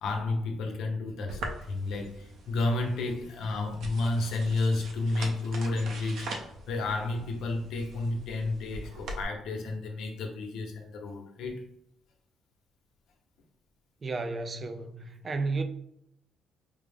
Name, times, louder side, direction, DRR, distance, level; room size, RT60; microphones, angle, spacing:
voice 1, 0.0-11.6, left 2 dB, 70° left, 0.8 m, -31 dB
sound 1, 1.3-9.2, right 2 dB, 70° right, 0.6 m, -42 dB
voice 2, 14.0-15.6, right 3 dB, 30° right, 0.3 m, -32 dB
5.1 x 2.0 x 3.4 m
cardioid pair, 140°, 0 cm